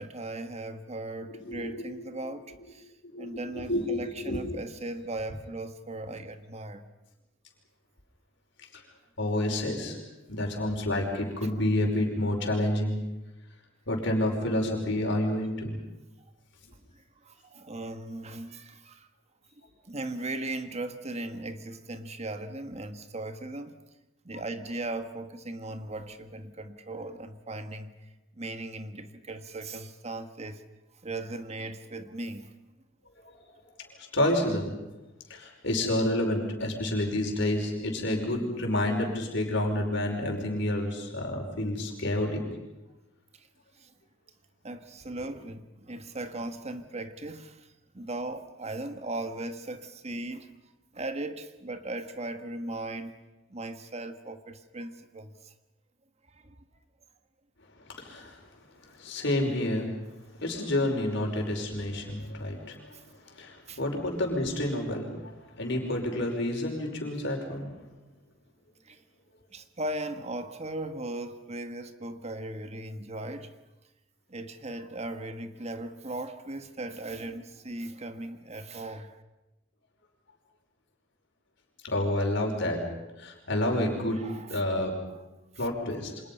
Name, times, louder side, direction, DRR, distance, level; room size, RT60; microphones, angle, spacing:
voice 1, 0.0-2.9 3.2-6.8 16.9-19.1 19.9-23.8 24.2-27.9 28.4-30.6 31.0-32.5 43.3-43.5 43.7-43.9 44.6-50.5 50.9-53.2 53.5-55.5 56.3-56.6 62.9-63.0 63.7-63.8 68.8-69.0 69.5-73.5 74.3-79.2 84.1-84.6, right 2 dB, 35° right, 1.4 m, -38 dB
voice 2, 1.3-1.9 3.1-4.4 8.7-8.8 9.2-10.0 10.3-13.0 13.9-15.8 33.2-33.4 33.8-34.7 35.3-42.4 57.8-58.5 58.8-59.9 60.4-67.7 81.8-84.2 84.5-84.9 85.6-86.2, left 1 dB, 65° left, 5.4 m, -29 dB
29.5 x 26.0 x 5.5 m
head